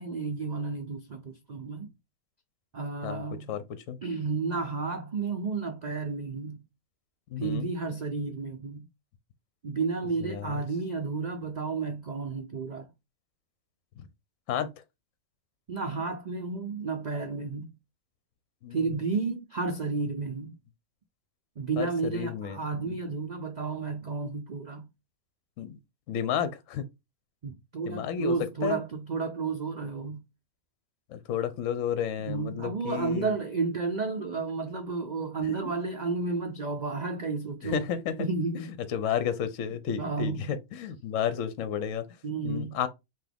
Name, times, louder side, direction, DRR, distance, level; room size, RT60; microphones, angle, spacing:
voice 1, 0.0-1.9 2.7-3.6 4.0-6.6 7.4-8.9 9.6-12.9 15.7-17.8 18.7-20.6 21.6-24.9 27.4-30.2 32.2-37.9 38.2-38.7 39.0-39.1 40.0-40.5 42.2-42.8, right 4 dB, 85° right, 0.3 m, -32 dB
voice 2, 3.5-4.0 7.3-7.7 10.2-10.6 14.0-14.1 14.5-14.7 18.6-18.8 21.8-22.9 25.6-25.8 26.1-26.8 27.9-28.3 28.6-28.8 31.1-33.3 37.6-38.1 38.9-42.1 42.4-42.9, left 8 dB, 65° left, 1.0 m, -32 dB
5.9 x 2.6 x 3.4 m
omnidirectional pair, 1.6 m